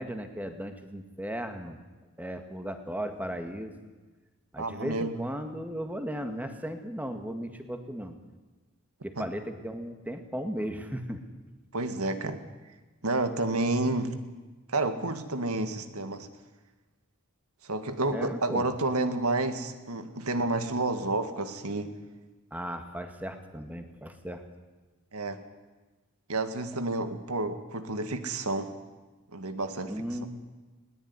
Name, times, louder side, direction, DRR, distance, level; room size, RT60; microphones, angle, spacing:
voice 1, 0.0-1.8 2.2-3.7 4.5-8.1 9.0-11.2 18.1-18.7 22.5-24.4 29.9-30.3, equal, 5° right, 6 dB, 2.0 m, -36 dB
voice 2, 4.6-5.1 9.2-9.3 11.7-12.4 13.0-14.2 14.7-16.3 17.7-21.9 25.1-25.4 26.3-28.7 29.3-29.9, right 2 dB, 80° right, 9 dB, 2.0 m, -30 dB
20.5 x 18.5 x 9.8 m, 1.2 s
head